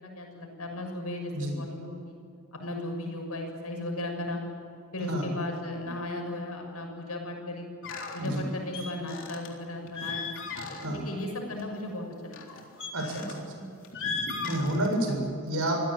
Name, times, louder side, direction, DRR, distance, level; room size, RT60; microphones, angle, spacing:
voice 1, 0.0-2.2 2.5-4.4 4.9-7.7 8.1-10.3 10.9-12.6, left 1 dB, 80° left, 2 dB, 6.7 m, -36 dB
sound 1, 7.8-8.3 8.7-9.5 9.8-11.0 11.4-11.6 12.3-13.4 13.8-15.1, left 4 dB, 60° left, 3.7 m, -36 dB
voice 2, 12.9-13.3 13.6-13.7 14.4-15.9, right 1 dB, 75° right, 2 dB, 7.2 m, -29 dB
26.5 x 16.5 x 9.0 m, 2.5 s
head